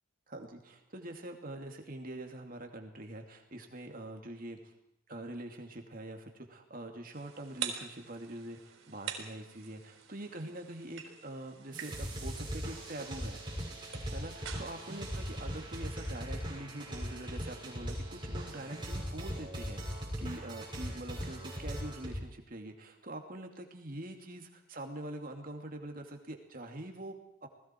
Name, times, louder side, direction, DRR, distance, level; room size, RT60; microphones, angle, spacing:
voice 1, 0.3-4.6 5.1-13.4 14.1-27.5, right 1 dB, 45° right, 4 dB, 2.6 m, -44 dB
sound 1, 7.1-16.2, right 8 dB, 80° right, 4.0 m, -46 dB
sound 2, 11.7-22.2, equal, 25° right, 6.1 m, -39 dB
29.0 x 19.5 x 4.6 m, 0.80 s
head